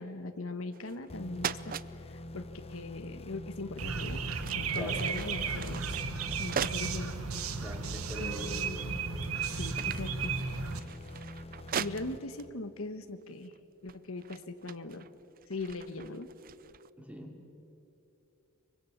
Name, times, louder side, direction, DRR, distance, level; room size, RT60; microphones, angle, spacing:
voice 1, 0.0-1.7 2.3-4.2 4.5-5.9 6.4-7.1 8.2-9.0 9.5-10.3 11.7-13.5 13.8-15.0 15.5-16.3, left 2 dB, 75° left, 9 dB, 1.3 m, -40 dB
sound 1, 0.7-1.1 1.4-1.9 3.5-3.7 4.2-7.0 7.6-7.7 8.5-8.9 9.3-12.4 13.3-13.6 13.9-16.9, right 8 dB, 40° right, 0.5 m, -40 dB
sound 2, 1.1-12.8, left 1 dB, 30° left, 0.9 m, -45 dB
sound 3, 3.8-10.8, right 5 dB, 90° right, 1.3 m, -34 dB
voice 2, 7.6-8.5 17.0-17.3, equal, 5° right, 2 dB, 3.0 m, -42 dB
25.0 x 24.0 x 7.2 m, 2.7 s
head